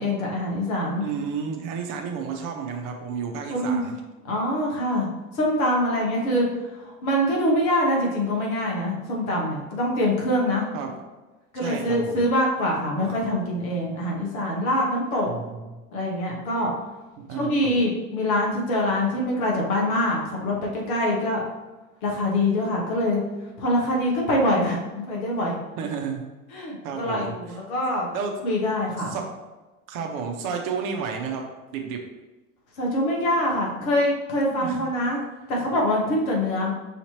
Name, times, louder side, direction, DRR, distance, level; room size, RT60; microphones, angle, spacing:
voice 1, 0.0-1.0 3.5-3.9 4.3-5.1 5.3-6.5 6.7-10.7 11.5-15.3 15.9-16.7 17.3-21.5 22.0-23.2 23.6-25.6 26.5-28.1 28.4-29.2 32.8-35.2 35.5-36.7, left 1 dB, 65° left, -2 dB, 1.4 m, -24 dB
voice 2, 1.0-3.9 10.7-10.9 11.6-12.2 15.3-15.6 17.2-17.7 25.8-26.2 26.8-27.3 28.1-28.3 29.1-29.2 29.9-31.4 31.7-32.0 34.5-34.9, right 6 dB, 45° right, 3 dB, 0.8 m, -31 dB
5.8 x 2.8 x 2.9 m, 1.1 s
figure-of-eight pair, 75°, 45 cm